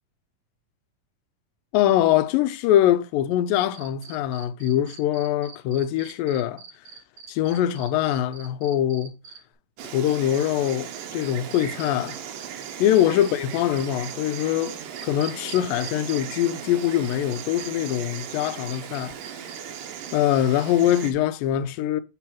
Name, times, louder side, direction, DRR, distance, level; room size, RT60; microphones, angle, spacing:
voice 1, 1.7-6.6 7.3-9.2 9.9-12.2 12.8-14.8 15.0-19.1 20.1-22.0, left 11 dB, 85° left, 2.3 m, -23 dB
Cricket, 3.7-9.4, right 6 dB, 60° right, 1.6 m, -44 dB
Insect, 9.8-21.1, right 9 dB, 80° right, 2.5 m, -37 dB
6.8 x 3.9 x 5.9 m
omnidirectional pair, 4.0 m